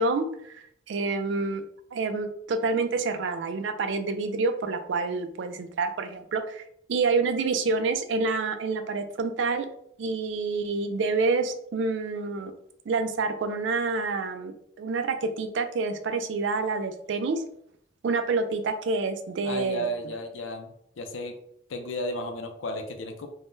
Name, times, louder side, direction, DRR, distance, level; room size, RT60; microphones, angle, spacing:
voice 1, 0.0-1.6 1.9-6.6 6.9-9.7 10.0-12.5 12.9-17.4 18.0-19.9, right 3 dB, 70° right, 8 dB, 0.4 m, -28 dB
voice 2, 19.4-20.7 21.0-21.3 21.7-23.3, equal, 90° left, 5 dB, 0.5 m, -33 dB
3.5 x 2.2 x 2.6 m, 0.69 s
head